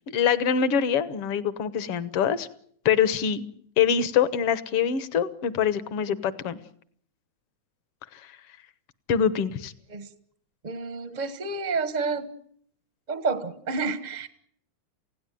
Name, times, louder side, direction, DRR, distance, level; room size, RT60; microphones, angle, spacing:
voice 1, 0.1-2.5 2.9-3.4 3.8-6.6 9.1-9.7, left 8 dB, 60° left, 14 dB, 1.8 m, -24 dB
voice 2, 10.6-12.3 13.1-14.3, right 4 dB, 40° right, 11 dB, 0.6 m, -29 dB
29.0 x 17.0 x 9.2 m, 0.65 s
omnidirectional pair, 3.5 m